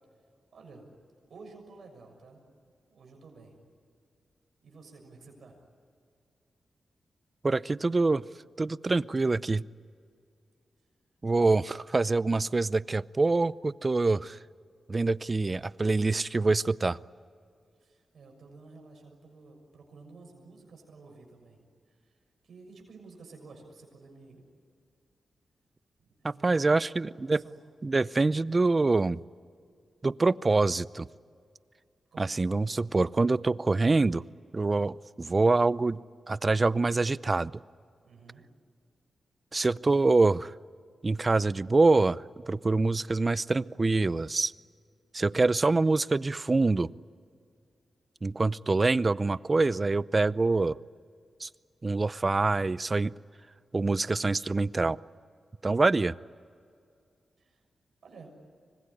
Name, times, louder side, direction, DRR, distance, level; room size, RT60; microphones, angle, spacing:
voice 1, 0.5-0.9 1.3-2.4 2.9-3.6 4.6-5.6 17.8-22.2 22.4-24.4 26.2-27.6 32.1-32.5 38.0-38.4 57.4-57.6 58.0-58.3, right 3 dB, 75° right, 2 dB, 6.7 m, -52 dB
voice 2, 7.4-8.2 8.6-9.6 11.2-14.4 14.9-17.0 26.2-27.4 27.8-29.2 30.0-31.1 32.2-34.2 34.5-36.0 36.3-37.5 39.5-40.5 41.0-44.5 45.1-46.9 48.2-50.8 51.4-51.5 51.8-53.1 53.7-55.0 55.6-56.1, right 3 dB, 35° right, 19 dB, 0.6 m, -25 dB
25.5 x 20.5 x 9.9 m, 2.3 s
cardioid pair, 60°, 0 cm